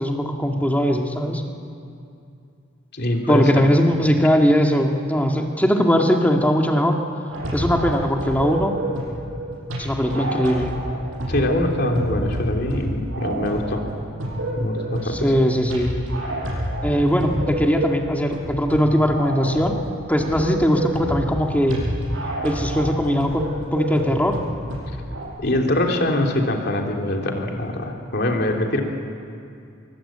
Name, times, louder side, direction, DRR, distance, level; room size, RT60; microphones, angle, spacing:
voice 1, 0.0-1.4 3.3-7.0 7.5-8.7 9.8-10.7 15.0-15.9 16.8-19.8 20.1-21.8 22.4-23.5 23.7-24.4, equal, 10° left, 2 dB, 2.0 m, -20 dB
voice 2, 2.9-3.7 11.3-13.8 14.6-15.4 25.4-28.8, left 1 dB, 55° left, 1 dB, 3.2 m, -23 dB
sound 1, 7.3-25.2, right 1 dB, 80° right, 7.9 m, -29 dB
26.0 x 23.0 x 8.8 m, 2.5 s
head